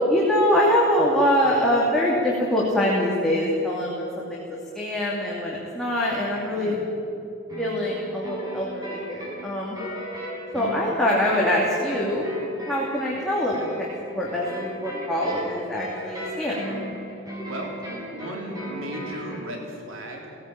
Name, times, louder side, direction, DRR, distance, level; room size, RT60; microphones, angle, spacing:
voice 1, 0.1-4.4 4.7-6.8 7.6-9.8 10.5-12.3 12.6-13.8 14.1-16.6, left 1 dB, ahead, -5 dB, 2.7 m, -24 dB
sound 1, 7.5-19.5, equal, 20° right, 6.0 m, -36 dB
voice 2, 18.1-20.4, right 1 dB, 75° right, 1 dB, 3.1 m, -36 dB
18.5 x 16.5 x 8.9 m, 3.0 s
head